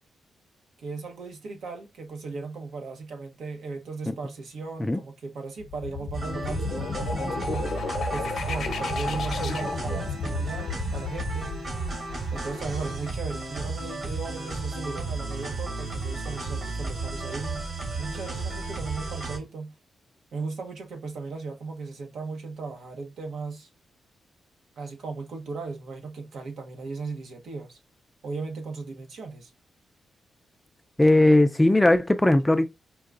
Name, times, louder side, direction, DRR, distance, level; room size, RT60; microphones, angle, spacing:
voice 1, 0.8-7.7 8.1-11.5 12.3-17.7 17.9-19.7 20.3-23.7 24.8-27.8 28.2-29.5, right 4 dB, 75° right, 0.9 m, -37 dB
sound 1, 5.6-13.2, left 4 dB, 65° left, 0.7 m, -33 dB
sound 2, 6.1-19.4, right 3 dB, 50° right, 1.9 m, -33 dB
voice 2, 31.0-32.7, left 1 dB, 10° left, 0.3 m, -18 dB
4.6 x 2.3 x 2.4 m
cardioid pair, 100°, 0 cm